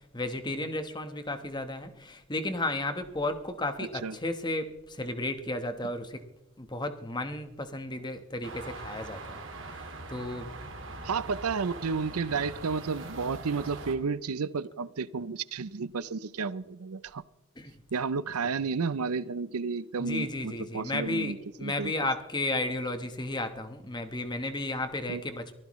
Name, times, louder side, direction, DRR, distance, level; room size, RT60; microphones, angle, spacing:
voice 1, 0.1-6.2 6.6-9.4 9.7-10.5 17.6-17.7 20.0-25.5, left 2 dB, 20° left, 8 dB, 1.2 m, -33 dB
sound 1, 8.4-14.0, right 2 dB, 55° right, 2.1 m, -42 dB
voice 2, 11.0-17.2 17.9-21.9 25.1-25.2, right 5 dB, 85° right, 17 dB, 0.6 m, -32 dB
23.5 x 15.5 x 3.2 m, 1.0 s
head